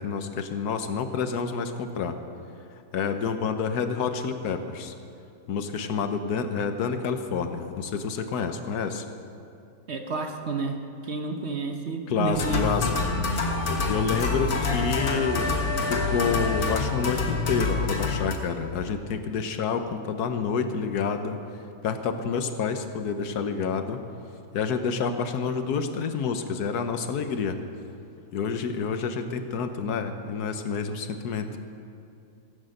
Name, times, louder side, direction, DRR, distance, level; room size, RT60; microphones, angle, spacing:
voice 1, 0.0-2.2 2.9-4.9 5.5-9.0 12.1-12.9 13.9-21.4 21.8-24.0 24.5-27.6 28.3-31.5, left 6 dB, 90° left, 8 dB, 1.4 m, -28 dB
voice 2, 9.9-10.8 11.0-12.6 12.9-13.0, right 4 dB, 50° right, 4 dB, 1.0 m, -30 dB
sound 1, 12.3-18.4, left 3 dB, 65° left, 1.8 m, -26 dB
16.5 x 8.6 x 6.6 m, 2.6 s
omnidirectional pair, 1.6 m